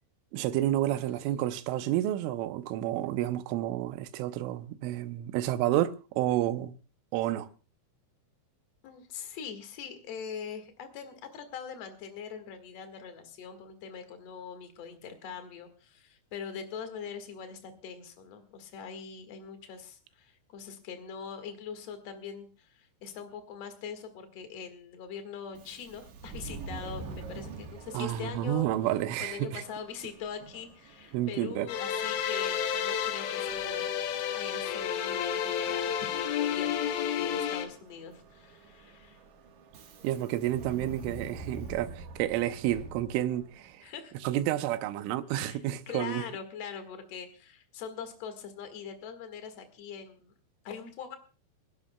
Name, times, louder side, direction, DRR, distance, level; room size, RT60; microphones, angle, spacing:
voice 1, 0.3-6.7 7.1-7.5 27.9-29.6 31.1-31.7 40.0-43.8 44.2-46.2, right 13 dB, 85° right, 3.3 m, -30 dB
voice 2, 8.8-28.7 29.2-33.9 34.3-39.2 43.8-44.1 45.3-50.3 50.6-51.2, left 6 dB, 55° left, 1.9 m, -42 dB
Subway metro underground, 25.5-43.8, right 3 dB, 65° right, 1.8 m, -47 dB
sound 1, 31.7-37.7, left 8 dB, 75° left, 3.4 m, -31 dB
28.5 x 11.5 x 2.3 m
omnidirectional pair, 5.5 m